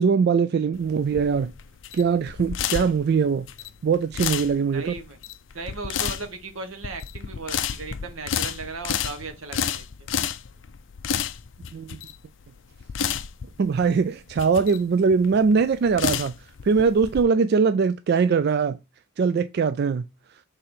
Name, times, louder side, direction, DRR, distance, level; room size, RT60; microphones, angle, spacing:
voice 1, 0.0-1.5 1.9-3.5 3.8-4.8 11.7-12.0 13.6-16.3 16.6-18.8 19.2-20.1, right 5 dB, 50° right, 0.3 m, -21 dB
sound 1, 0.7-17.2, left 8 dB, 60° left, 0.5 m, -31 dB
voice 2, 4.7-5.2 5.5-10.1, right 3 dB, 80° right, 1.2 m, -36 dB
6.8 x 3.7 x 4.3 m
head